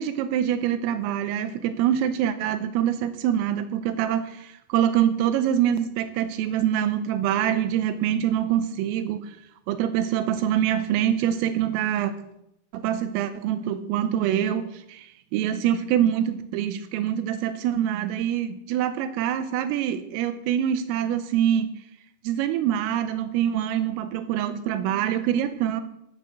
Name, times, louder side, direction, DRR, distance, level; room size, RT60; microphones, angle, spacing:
voice 1, 0.0-9.3 9.7-12.2 12.7-21.7 22.3-25.8, right 10 dB, 85° right, 9 dB, 3.5 m, -25 dB
16.0 x 10.5 x 6.7 m, 0.80 s
omnidirectional pair, 5.9 m